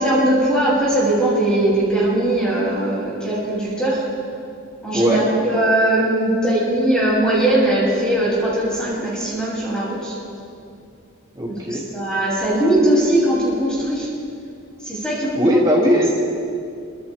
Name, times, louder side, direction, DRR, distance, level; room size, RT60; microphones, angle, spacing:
voice 1, 0.0-4.0 4.8-10.1 11.5-14.1 14.8-15.6 15.9-16.0, right 1 dB, 5° left, -8 dB, 7.6 m, -20 dB
voice 2, 4.9-5.3 11.3-11.8 15.4-16.1, equal, 20° right, -4 dB, 3.1 m, -18 dB
29.0 x 26.5 x 3.7 m, 2.4 s
head